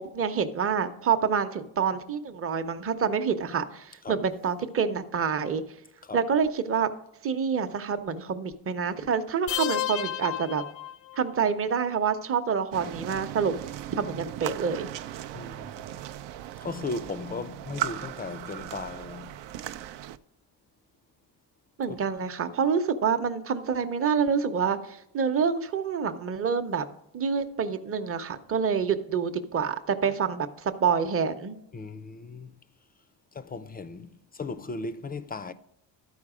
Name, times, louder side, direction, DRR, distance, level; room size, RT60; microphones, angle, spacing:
voice 1, 0.0-5.6 6.1-6.9 7.2-10.6 11.2-13.5 14.0-14.9 21.8-26.9 27.1-31.6, right 6 dB, 30° right, 0.7 m, -27 dB
sound 1, 9.5-11.4, left 14 dB, 80° left, 0.6 m, -32 dB
sound 2, 12.7-20.2, right 11 dB, 80° right, 0.5 m, -37 dB
voice 2, 15.3-15.9 16.6-19.4 21.9-22.1 31.7-32.5 33.3-35.5, left 3 dB, 25° left, 0.3 m, -37 dB
12.5 x 4.8 x 4.9 m
cardioid pair, 120°, 43 cm